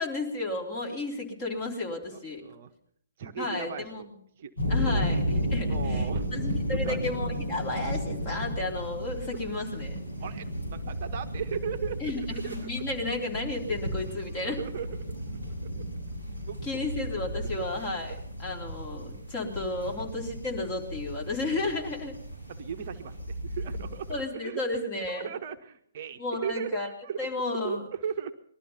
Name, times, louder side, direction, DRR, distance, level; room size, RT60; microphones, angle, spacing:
voice 1, 0.0-2.4 3.4-4.0 4.7-5.2 5.5-10.0 12.0-14.6 16.6-22.2 24.1-25.3 26.2-26.9 27.2-27.8, left 2 dB, 25° left, 1 dB, 3.4 m, -33 dB
voice 2, 2.1-2.7 3.2-4.1 4.4-5.1 5.7-6.3 6.8-7.0 10.2-12.7 14.4-15.5 16.5-17.0 17.5-17.7 18.1-18.2 22.5-24.6 25.1-27.3 27.6-28.3, right 7 dB, 40° right, 7 dB, 0.9 m, -37 dB
sound 1, 4.6-24.2, equal, 75° left, 7.4 m, -34 dB
20.5 x 12.5 x 5.6 m, 0.70 s
figure-of-eight pair, 130°, 0 cm